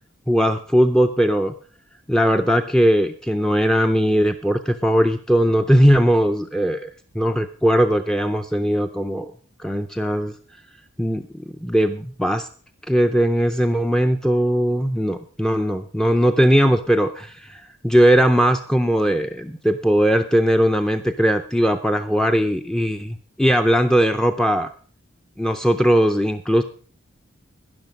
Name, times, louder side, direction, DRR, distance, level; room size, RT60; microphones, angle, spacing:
voice 1, 0.3-1.5 2.1-9.3 9.6-10.3 11.0-11.2 11.6-12.5 12.9-24.7 25.4-26.6, equal, 5° left, 6 dB, 0.4 m, -19 dB
12.0 x 10.5 x 5.2 m, 0.43 s
head